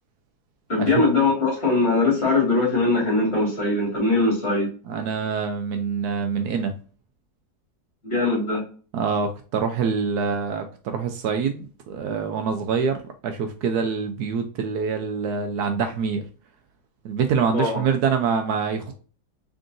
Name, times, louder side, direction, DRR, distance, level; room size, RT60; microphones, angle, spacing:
voice 1, 0.7-4.7 8.0-8.6 17.5-17.8, left 3 dB, 35° left, -3 dB, 2.2 m, -21 dB
voice 2, 4.9-6.7 8.9-16.2 17.0-18.9, right 6 dB, 70° right, 6 dB, 1.0 m, -25 dB
3.7 x 3.7 x 2.5 m, 0.39 s
omnidirectional pair, 1.9 m